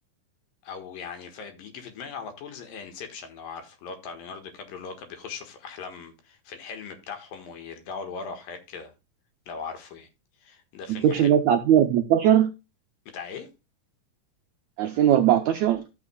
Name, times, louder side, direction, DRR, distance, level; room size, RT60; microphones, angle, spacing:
voice 1, 0.6-8.9 9.5-10.1 10.4-11.4 13.1-13.5, left 5 dB, 85° left, 3.1 m, -39 dB
voice 2, 11.0-12.5 14.8-15.8, right 10 dB, 90° right, 1.5 m, -19 dB
13.5 x 7.1 x 2.2 m
omnidirectional pair, 3.9 m